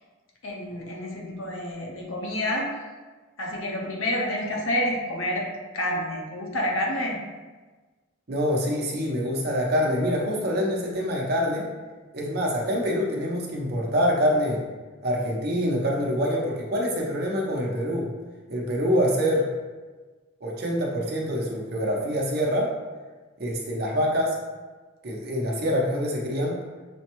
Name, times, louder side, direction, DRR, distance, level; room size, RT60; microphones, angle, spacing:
voice 1, 0.4-2.7 3.4-5.5 5.7-7.2, left 1 dB, 85° left, -1 dB, 0.8 m, -28 dB
voice 2, 8.3-11.7 12.1-14.6 15.0-18.1 18.5-19.5 20.4-22.7 23.4-24.4 25.0-26.6, equal, 50° right, -2 dB, 0.8 m, -25 dB
6.2 x 2.2 x 2.9 m, 1.3 s
head